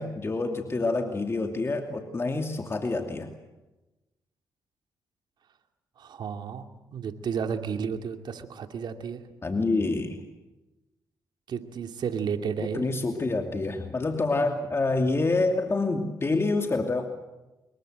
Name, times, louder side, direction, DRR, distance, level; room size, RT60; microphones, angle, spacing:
voice 1, 0.0-3.3 9.4-10.2 12.7-17.1, left 3 dB, 35° left, 4 dB, 2.6 m, -27 dB
voice 2, 6.0-6.7 6.9-9.2 11.5-12.9, right 6 dB, 70° right, 6 dB, 2.5 m, -32 dB
26.5 x 22.0 x 7.9 m, 1.0 s
cardioid pair, 70°, 8 cm